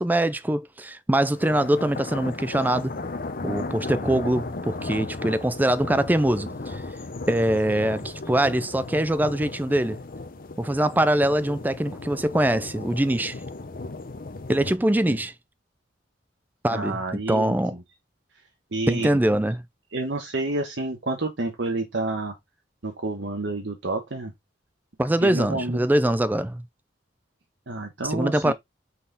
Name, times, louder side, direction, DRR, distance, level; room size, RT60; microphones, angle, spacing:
voice 1, 0.0-2.9 3.4-6.8 7.3-10.0 10.6-13.4 14.5-15.3 16.6-17.0 17.3-17.8 18.9-19.6 25.0-26.6 28.0-28.5, right 1 dB, 10° right, 0.3 m, -23 dB
sound 1, 1.3-14.8, left 3 dB, 50° left, 0.7 m, -35 dB
voice 2, 16.7-17.8 18.7-19.1 19.9-22.3 22.8-24.3 25.2-25.9 27.7-28.5, right 2 dB, 70° right, 1.2 m, -29 dB
5.7 x 4.2 x 3.9 m
head